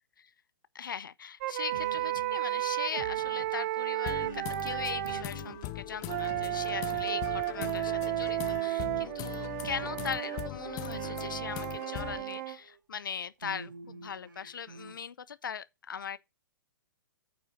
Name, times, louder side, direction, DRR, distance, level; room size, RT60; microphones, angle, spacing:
voice 1, 0.7-16.2, left 7 dB, 75° left, 0.6 m, -40 dB
sound 1, 1.4-5.3 6.0-12.6, right 16 dB, 45° right, 0.7 m, -33 dB
sound 2, 1.7-12.8 13.4-14.9, right 6 dB, 75° right, 2.1 m, -48 dB
sound 3, 3.9-12.2, left 24 dB, 30° left, 0.4 m, -41 dB
9.0 x 4.9 x 4.9 m
hypercardioid pair, 120°, 11 cm